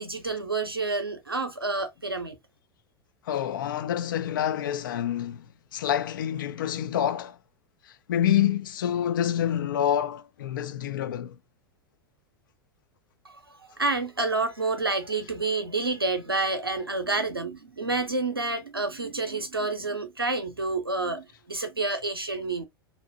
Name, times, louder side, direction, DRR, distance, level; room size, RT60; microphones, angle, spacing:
voice 1, 0.0-2.4 13.2-22.7, right 3 dB, 85° right, 0.6 m, -29 dB
voice 2, 3.3-5.5 5.7-7.4 8.1-11.4, left 10 dB, 60° left, 0.4 m, -27 dB
2.7 x 2.0 x 2.6 m
figure-of-eight pair, 90°, 12 cm